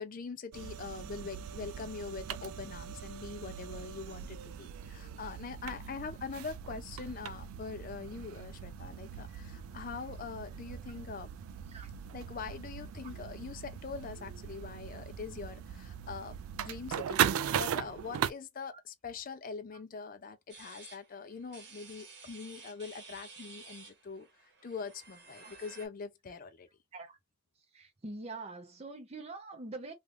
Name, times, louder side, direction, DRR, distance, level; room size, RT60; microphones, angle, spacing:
voice 1, 0.0-11.3 12.1-24.3 24.6-26.7, left 5 dB, 40° left, 0.4 m, -43 dB
sound 1, 0.5-18.3, right 9 dB, 85° right, 0.3 m, -39 dB
sound 2, 20.5-25.9, right 4 dB, 55° right, 1.0 m, -53 dB
voice 2, 27.7-29.9, right 3 dB, 30° right, 0.5 m, -44 dB
2.4 x 2.4 x 3.2 m
head